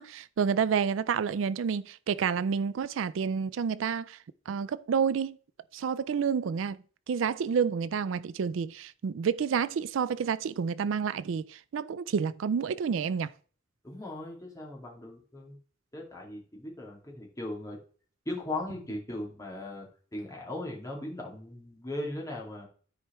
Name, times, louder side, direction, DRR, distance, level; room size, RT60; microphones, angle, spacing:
voice 1, 0.0-4.2 4.5-5.4 5.7-6.8 7.1-13.3, right 6 dB, 80° right, 0.4 m, -29 dB
voice 2, 13.8-15.6 15.9-17.8 18.3-19.9 20.1-22.7, left 1 dB, 20° left, 2.2 m, -38 dB
13.0 x 4.7 x 3.1 m
head